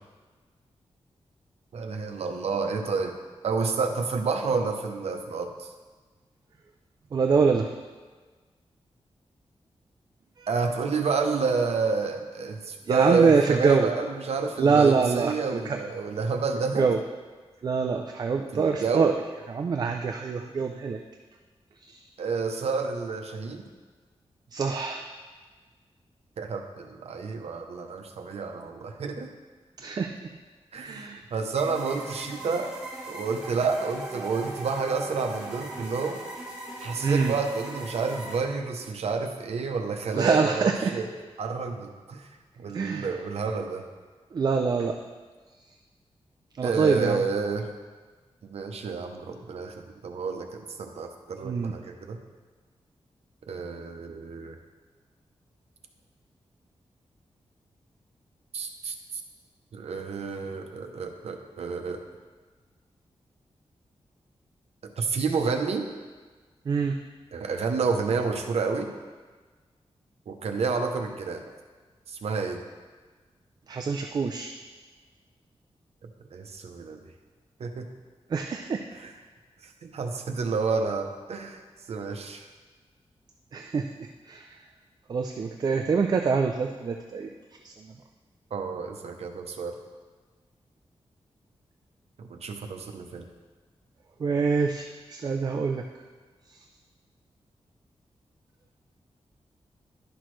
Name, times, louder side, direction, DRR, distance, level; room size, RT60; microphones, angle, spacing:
voice 1, 1.7-3.1 3.4-5.7 10.5-16.9 18.5-19.1 22.2-23.6 26.4-29.3 30.7-32.7 33.1-36.2 36.8-41.1 41.4-42.3 42.6-43.8 46.6-47.7 48.4-52.2 53.5-54.6 58.5-58.9 59.7-62.0 64.8-65.9 67.3-68.9 70.3-71.4 72.1-72.6 76.3-77.0 77.6-77.9 78.9-79.1 79.6-81.6 81.9-82.4 88.5-89.7 92.2-93.2, right 4 dB, 75° right, 4 dB, 0.7 m, -29 dB
voice 2, 7.1-7.7 10.4-10.5 12.9-13.9 14.6-15.8 16.8-17.0 17.6-19.1 19.5-21.0 21.8-22.0 24.5-25.1 29.8-30.3 30.8-31.2 37.0-37.3 40.1-40.9 42.7-43.1 44.3-45.0 46.6-47.2 51.4-51.7 66.7-67.0 73.7-74.5 78.3-78.8 83.5-84.6 85.1-87.3 87.6-88.0 94.2-95.8 96.5-96.6, right 5 dB, 40° right, 4 dB, 0.4 m, -25 dB
sound 1, 31.6-38.4, right 1 dB, 10° right, 1.4 m, -39 dB
11.0 x 6.0 x 3.2 m, 1.4 s
wide cardioid pair, 180°, 11 cm